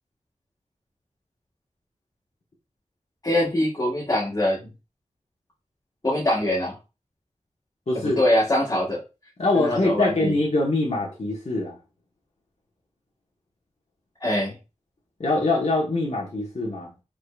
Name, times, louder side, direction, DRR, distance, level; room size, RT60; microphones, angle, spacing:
voice 1, 3.2-4.6 6.0-6.7 8.2-9.0 9.5-10.3 14.2-14.5, left 1 dB, 30° left, 1.4 m, -23 dB
voice 2, 7.9-8.2 9.4-11.8 15.2-16.9, left 2 dB, 55° left, 1.3 m, -23 dB
4.9 x 3.8 x 2.4 m
wide cardioid pair, 80°, 13 cm